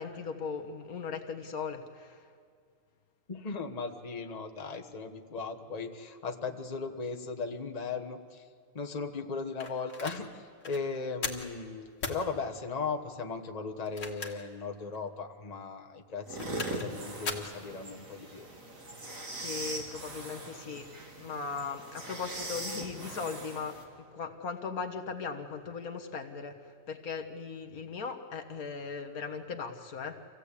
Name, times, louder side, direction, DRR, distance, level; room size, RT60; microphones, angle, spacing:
voice 1, 0.0-2.3 19.4-20.9 21.2-23.8 24.1-30.2, left 5 dB, 90° left, 6 dB, 1.9 m, -38 dB
voice 2, 3.3-8.5 8.7-18.5, left 4 dB, 30° left, 3 dB, 1.3 m, -37 dB
sound 1, 9.6-10.2 10.6-10.8 11.2-11.5 12.0-12.2 13.8-14.5 14.9-15.0 16.2-16.9 17.2-17.5, left 4 dB, 60° left, 2.1 m, -37 dB
sound 2, 16.2-23.8, right 2 dB, 70° right, 3.1 m, -41 dB
26.5 x 16.5 x 8.4 m, 2.2 s
omnidirectional pair, 1.5 m